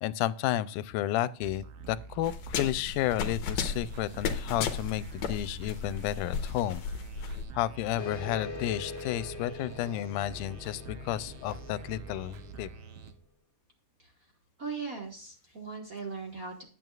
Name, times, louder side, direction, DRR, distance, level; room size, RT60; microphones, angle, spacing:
voice 1, 0.0-6.8 7.2-12.7, left 13 dB, 90° left, 16 dB, 2.1 m, -32 dB
sound 1, 1.4-13.1, right 6 dB, 65° right, 1.5 m, -47 dB
sound 2, 2.2-7.4, left 6 dB, 70° left, 2.1 m, -34 dB
sound 3, 8.0-13.1, left 4 dB, 45° left, 2.2 m, -43 dB
voice 2, 14.6-16.6, right 4 dB, 40° right, 0 dB, 1.3 m, -38 dB
10.5 x 9.3 x 2.4 m, 0.41 s
omnidirectional pair, 3.6 m